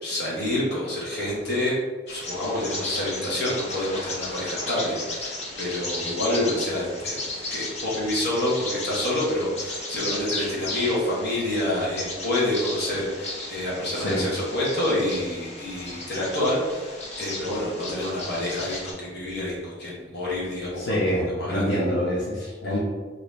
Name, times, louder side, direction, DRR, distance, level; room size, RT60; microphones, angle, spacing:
voice 1, 0.0-1.7 2.1-7.2 7.5-21.1 21.4-21.7 22.4-22.5, left 1 dB, 60° left, -6 dB, 1.1 m, -28 dB
Bird vocalization bird call bird song, 2.1-18.9, left 2 dB, 35° left, 0.6 m, -35 dB
voice 2, 20.8-22.8, equal, 90° left, -6 dB, 0.6 m, -26 dB
2.8 x 2.6 x 3.3 m, 1.4 s
head